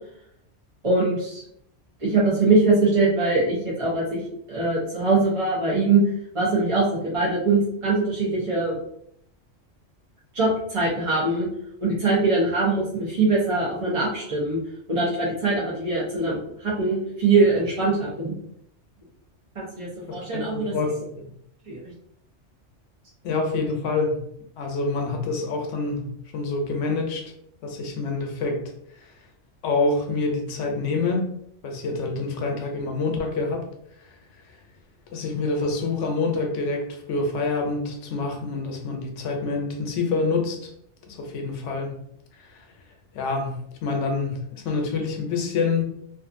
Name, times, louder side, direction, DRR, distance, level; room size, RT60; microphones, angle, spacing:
voice 1, 0.8-1.4 2.0-4.2 4.5-6.0 6.3-8.8 10.3-11.5 11.8-14.6 14.9-18.4 19.5-20.7 21.7-21.9, right 3 dB, 35° right, -7 dB, 0.6 m, -22 dB
voice 2, 20.1-21.3 23.2-24.2 24.6-27.2 27.6-28.6 29.6-31.3 31.6-33.6 34.0-34.1 35.1-40.7 41.1-42.0 42.4-42.6 43.1-45.9, left 3 dB, 85° left, 3 dB, 0.9 m, -27 dB
2.5 x 2.4 x 2.5 m, 0.72 s
omnidirectional pair, 1.2 m